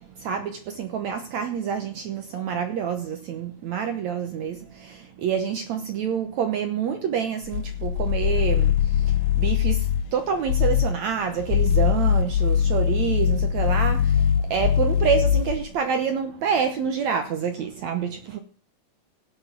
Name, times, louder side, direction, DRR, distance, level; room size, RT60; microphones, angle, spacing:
voice 1, 0.2-18.4, right 7 dB, 70° right, 1.8 m, -27 dB
sound 1, 7.4-10.1 10.5-11.0 11.4-15.7, left 9 dB, 90° left, 1.7 m, -22 dB
17.0 x 6.2 x 5.9 m
omnidirectional pair, 4.3 m